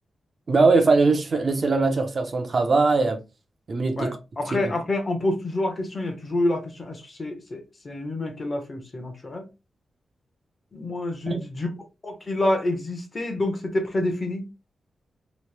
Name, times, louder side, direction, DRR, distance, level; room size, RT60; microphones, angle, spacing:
voice 1, 0.5-3.2 3.7-4.1 4.6-4.7 11.3-11.4, right 3 dB, 40° right, 0.6 m, -21 dB
voice 2, 4.0-9.4 10.7-11.7 12.0-14.5, left 1 dB, 30° left, 0.9 m, -28 dB
3.1 x 3.0 x 3.3 m
wide cardioid pair, 160°, 0 cm